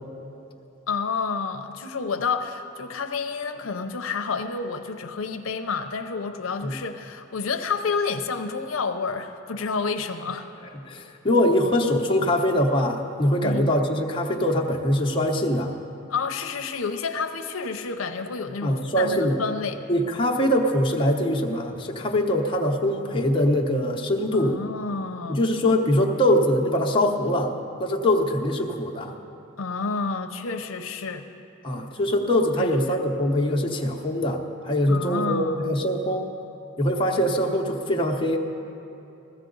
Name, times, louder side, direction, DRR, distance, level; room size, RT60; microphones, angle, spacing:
voice 1, 0.9-10.5 13.4-13.7 16.1-19.8 24.3-25.4 29.6-31.3 32.6-33.0 34.9-35.7, left 4 dB, 80° left, 7 dB, 0.6 m, -29 dB
voice 2, 10.9-15.7 18.6-19.4 19.9-24.6 25.3-27.5 27.8-29.1 31.6-36.3 36.8-38.4, left 1 dB, 25° left, 0 dB, 0.9 m, -23 dB
15.0 x 14.5 x 3.9 m, 2.8 s
head